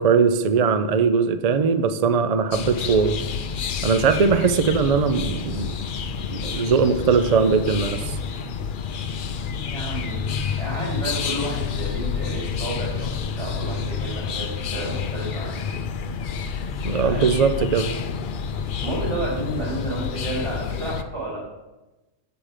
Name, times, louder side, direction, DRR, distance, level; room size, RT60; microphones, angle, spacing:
voice 1, 0.0-3.2 3.8-5.7 6.3-8.1 16.8-17.9, right 5 dB, 50° right, 10 dB, 0.5 m, -20 dB
sound 1, 2.5-21.0, left 6 dB, 60° left, 0.6 m, -29 dB
voice 2, 9.7-10.3 10.6-13.1 13.4-15.8 16.9-17.3 18.8-21.4, right 1 dB, 75° right, -5 dB, 4.0 m, -31 dB
7.4 x 7.0 x 4.9 m, 1.0 s
omnidirectional pair, 1.2 m